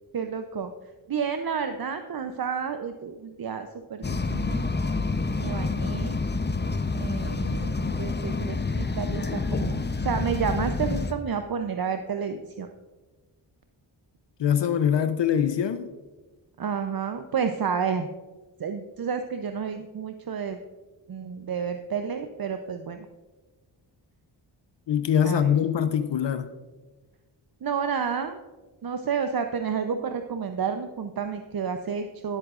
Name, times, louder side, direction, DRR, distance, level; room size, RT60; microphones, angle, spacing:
voice 1, 0.1-4.6 5.4-6.1 6.9-12.7 16.6-18.1 18.6-20.6 21.1-23.1 25.2-25.5 27.6-28.4 28.8-32.4, right 6 dB, 45° right, 7 dB, 0.7 m, -30 dB
sound 1, 4.0-11.1, left 3 dB, 20° left, 0.8 m, -28 dB
voice 2, 14.4-15.9 24.9-26.5, left 8 dB, 60° left, 10 dB, 0.7 m, -23 dB
17.5 x 7.9 x 2.5 m, 1.3 s
cardioid pair, 40°, 49 cm